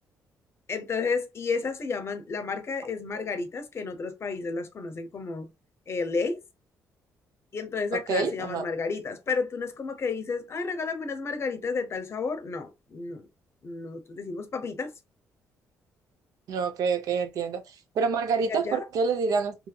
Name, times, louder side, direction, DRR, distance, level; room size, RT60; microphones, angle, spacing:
voice 1, 0.7-5.5 5.9-6.4 7.5-13.3 13.6-14.9 18.5-18.8, left 4 dB, 45° left, 0.7 m, -31 dB
voice 2, 7.9-8.7 16.5-19.6, right 5 dB, 70° right, 0.6 m, -27 dB
2.7 x 2.6 x 2.3 m
cardioid pair, 80°, 6 cm